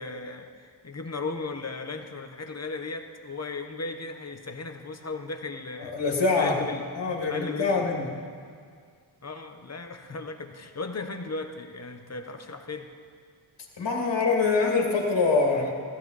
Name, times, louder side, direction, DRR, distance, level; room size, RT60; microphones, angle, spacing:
voice 1, 0.0-6.0 6.3-6.9 7.2-7.8 9.2-12.9, left 3 dB, 35° left, 5 dB, 0.9 m, -36 dB
voice 2, 5.8-8.1 13.8-15.7, left 4 dB, 60° left, -1 dB, 2.3 m, -25 dB
18.5 x 14.5 x 4.1 m, 2.1 s
wide cardioid pair, 175°, 48 cm